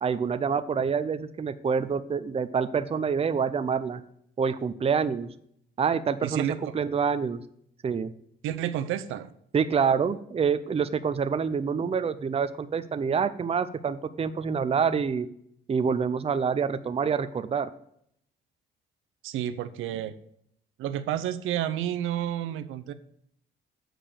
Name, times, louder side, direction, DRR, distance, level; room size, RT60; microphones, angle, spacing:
voice 1, 0.0-4.0 4.4-5.3 5.8-6.4 6.7-7.4 7.8-8.1 9.5-15.3 15.7-17.7, right 6 dB, 30° right, 12 dB, 0.6 m, -27 dB
voice 2, 6.2-6.7 8.4-9.3 19.2-20.1 20.8-22.9, right 11 dB, 85° right, 10 dB, 0.6 m, -30 dB
7.5 x 5.0 x 6.5 m, 0.69 s
cardioid pair, 90°, 20 cm